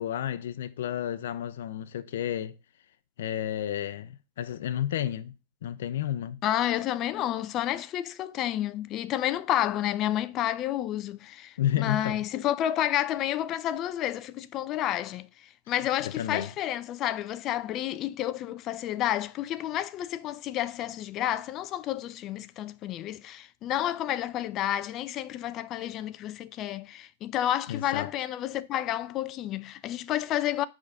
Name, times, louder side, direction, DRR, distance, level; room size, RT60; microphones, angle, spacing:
voice 1, 0.0-2.6 3.2-5.3 5.6-6.4 11.6-12.2 16.0-16.5 27.7-28.1, left 11 dB, 70° left, 0.6 m, -31 dB
voice 2, 6.4-30.7, left 12 dB, 30° left, 0.4 m, -30 dB
8.5 x 3.7 x 5.4 m
supercardioid pair, 150°, 0 cm